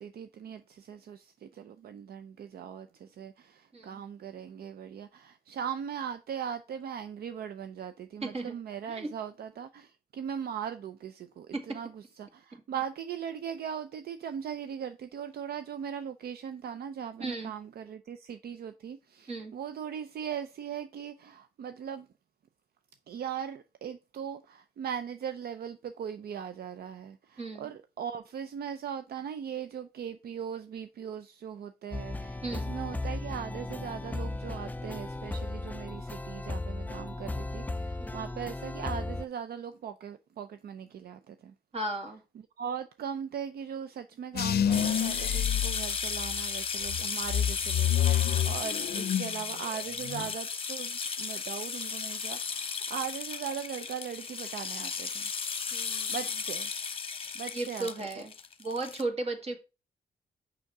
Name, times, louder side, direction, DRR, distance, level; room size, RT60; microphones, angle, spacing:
voice 1, 0.0-22.1 23.1-41.5 42.3-55.3 56.1-56.7 57.3-58.2, right 8 dB, 70° right, 0.5 m, -39 dB
voice 2, 8.2-8.6 8.8-9.1 11.5-11.7 17.2-17.5 19.3-19.5 27.4-27.7 32.4-32.7 38.0-38.2 41.7-42.2 48.3-48.5 55.7-56.1 57.5-58.3 58.6-59.6, right 2 dB, 40° right, 2.0 m, -35 dB
sound 1, 31.9-39.2, left 2 dB, 10° left, 0.3 m, -36 dB
sound 2, 44.3-46.4 46.8-49.4 49.7-50.3, left 10 dB, 70° left, 0.5 m, -28 dB
sound 3, 44.7-59.0, left 5 dB, 35° left, 0.9 m, -35 dB
6.4 x 5.7 x 4.7 m
cardioid pair, 100°, 17 cm